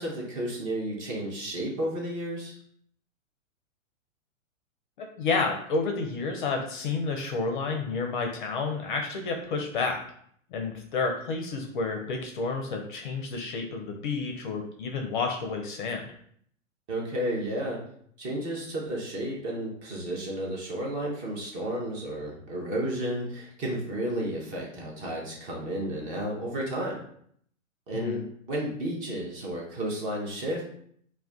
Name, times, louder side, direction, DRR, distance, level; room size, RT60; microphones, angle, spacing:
voice 1, 0.0-2.6 16.9-17.8 18.2-27.0 27.9-30.6, right 1 dB, 20° right, -3 dB, 0.5 m, -32 dB
voice 2, 5.0-10.0 10.5-16.1 27.9-28.2, left 4 dB, 40° left, 3 dB, 0.5 m, -30 dB
2.2 x 2.2 x 3.5 m, 0.64 s
figure-of-eight pair, 110°, 40 cm